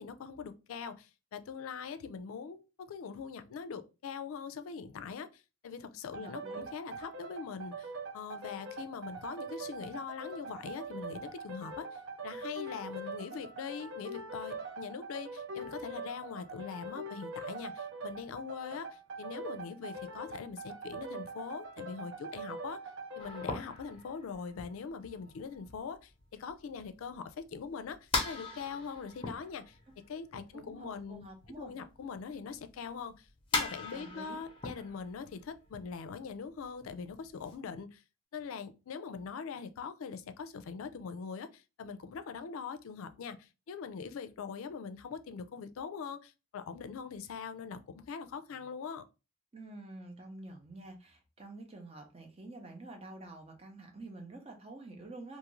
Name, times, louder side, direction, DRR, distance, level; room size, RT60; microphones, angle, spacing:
voice 1, 0.0-22.8 23.2-29.8 30.1-31.2 31.6-33.3 33.5-38.0 38.3-49.0, left 6 dB, 85° left, 0.4 m, -42 dB
sound 1, 6.1-23.6, right 2 dB, 75° right, 0.5 m, -43 dB
voice 2, 6.2-6.6 30.5-31.7 33.9-34.4 49.5-55.4, right 2 dB, 30° right, 0.5 m, -48 dB
sound 2, 23.2-31.8 32.1-37.5, left 3 dB, 25° left, 0.6 m, -40 dB
2.5 x 2.4 x 3.0 m
head